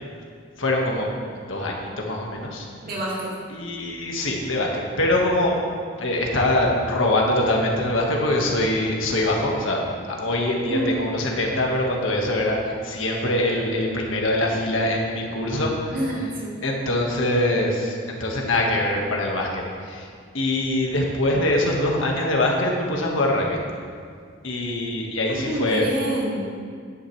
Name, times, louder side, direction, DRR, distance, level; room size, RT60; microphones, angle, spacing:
voice 1, 0.6-1.1 1.5-2.7 3.5-5.5 6.0-9.8 10.1-20.1 20.3-23.6 24.4-25.9, left 1 dB, 75° left, -1 dB, 1.6 m, -23 dB
voice 2, 2.8-3.3 10.7-11.0 15.9-16.6 25.3-26.5, right 1 dB, 50° right, -4 dB, 2.3 m, -27 dB
11.5 x 9.9 x 3.3 m, 2.1 s
head